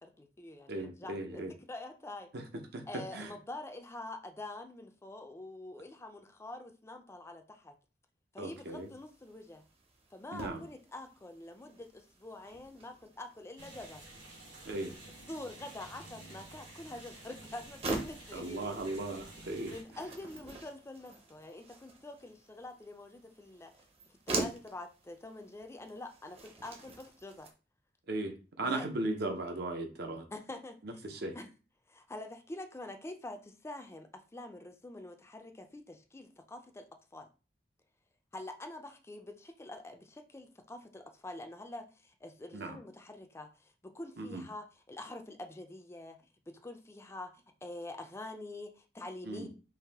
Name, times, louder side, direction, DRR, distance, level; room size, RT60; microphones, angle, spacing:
voice 1, 0.0-2.3 2.9-7.7 8.3-9.6 10.1-14.0 15.3-18.7 19.7-23.7 24.3-27.5 28.6-28.9 30.3-30.8 31.3-31.5 31.9-36.8 37.1-37.3 38.3-46.2 46.6-49.5, left 2 dB, 15° left, 0.4 m, -46 dB
voice 2, 0.7-1.5 2.3-2.4 2.7-3.3 8.4-8.9 10.3-10.6 14.6-14.9 18.3-19.7 28.1-30.3 30.8-31.4 42.5-42.8 44.2-44.4 49.2-49.5, right 2 dB, 65° right, 0.8 m, -37 dB
sound 1, 8.4-27.5, right 2 dB, 35° right, 0.8 m, -45 dB
sound 2, 13.6-19.8, right 1 dB, 85° right, 2.2 m, -51 dB
4.7 x 2.6 x 3.5 m
head